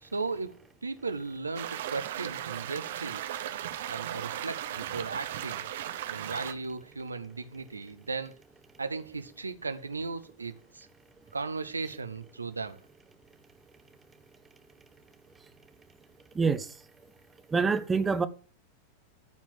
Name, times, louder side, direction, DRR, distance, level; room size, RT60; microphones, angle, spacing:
voice 1, 0.0-3.2 3.9-5.7 6.1-8.4 8.8-10.9 11.3-12.8, right 4 dB, 80° right, 0.9 m, -36 dB
sound 1, 1.5-6.5, right 12 dB, 55° right, 1.0 m, -36 dB
voice 2, 16.3-16.7 17.5-18.3, right 5 dB, 15° right, 0.9 m, -26 dB
13.5 x 4.5 x 7.5 m
figure-of-eight pair, 90°, 0 cm